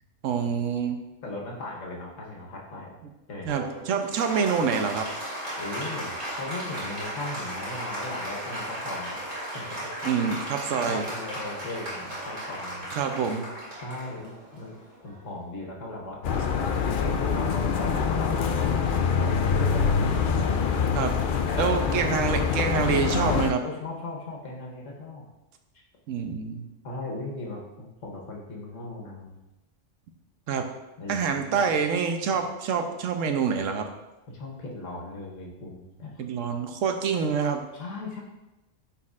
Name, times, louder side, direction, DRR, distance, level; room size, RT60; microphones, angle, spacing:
voice 1, 0.2-1.0 3.5-5.1 10.0-11.0 12.9-13.5 20.9-21.1 21.6-23.6 26.1-26.6 30.5-30.7 31.1-33.9 36.2-37.7, right 6 dB, 90° right, 6 dB, 1.0 m, -26 dB
voice 2, 1.2-2.9 3.3-3.5 5.6-9.2 9.5-10.3 10.9-12.9 13.8-14.7 15.0-16.2 16.8-18.9 19.2-20.1 20.5-20.9 21.5-22.0 22.3-22.5 23.6-25.2 26.8-29.4 31.0-31.7 34.3-36.1 37.7-38.2, left 2 dB, 80° left, -1 dB, 1.5 m, -37 dB
Applause, 3.5-15.4, right 1 dB, 40° right, 2.4 m, -36 dB
sound 1, 16.2-23.5, left 6 dB, 60° left, 0.5 m, -25 dB
9.5 x 4.2 x 2.4 m, 1.0 s
omnidirectional pair, 1.3 m